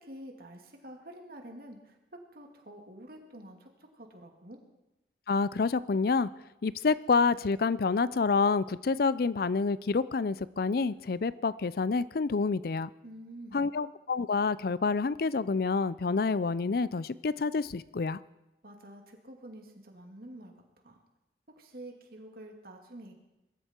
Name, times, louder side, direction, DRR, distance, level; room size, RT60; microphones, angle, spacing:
voice 1, 0.0-2.0 2.3-4.6 13.0-13.6 18.6-20.5 20.8-21.0 21.6-23.1, right 1 dB, 55° right, 3 dB, 2.4 m, -48 dB
voice 2, 5.3-6.3 6.6-12.9 13.5-18.2, left 4 dB, 55° left, 18 dB, 0.5 m, -28 dB
22.0 x 13.0 x 4.5 m, 0.97 s
head